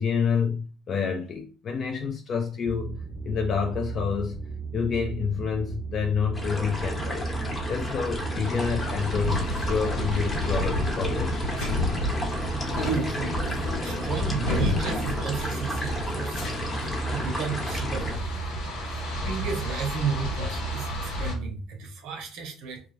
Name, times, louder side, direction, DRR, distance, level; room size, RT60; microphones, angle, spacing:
voice 1, 0.0-3.0 3.2-4.4 4.7-7.3 7.7-11.4, left 6 dB, 50° left, 0.4 m, -28 dB
sound 1, 2.6-21.5, right 5 dB, 5° right, 0.6 m, -36 dB
sound 2, 6.3-18.2, left 1 dB, 25° left, 0.9 m, -32 dB
sound 3, 8.4-21.3, left 2 dB, 85° left, 1.1 m, -32 dB
voice 2, 12.8-16.4 17.1-18.3 19.3-22.8, right 5 dB, 75° right, 0.7 m, -33 dB
2.3 x 2.3 x 3.1 m
supercardioid pair, 85°, 0 cm